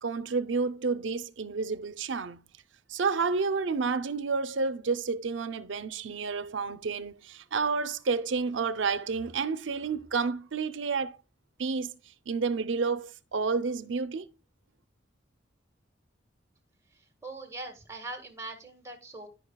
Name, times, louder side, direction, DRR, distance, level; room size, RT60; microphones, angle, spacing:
voice 1, 0.0-2.4 2.9-11.2 11.6-11.9 12.3-14.3, right 4 dB, 80° right, 0.6 m, -30 dB
voice 2, 16.9-19.3, right 2 dB, 15° right, 1.7 m, -42 dB
13.5 x 5.3 x 2.3 m
head